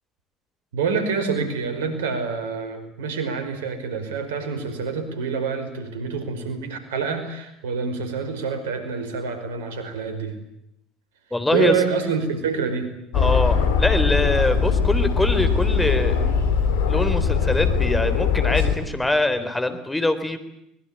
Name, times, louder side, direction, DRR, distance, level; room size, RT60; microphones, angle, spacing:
voice 1, 0.7-10.4 11.5-12.9, right 5 dB, 80° right, 9 dB, 5.2 m, -27 dB
voice 2, 11.3-11.7 13.1-16.2 16.9-20.4, left 2 dB, 10° left, 11 dB, 3.9 m, -23 dB
Aircraft, 13.1-18.8, left 6 dB, 75° left, 4.1 m, -21 dB
24.0 x 22.0 x 9.0 m, 0.80 s
hypercardioid pair, 65°, 0 cm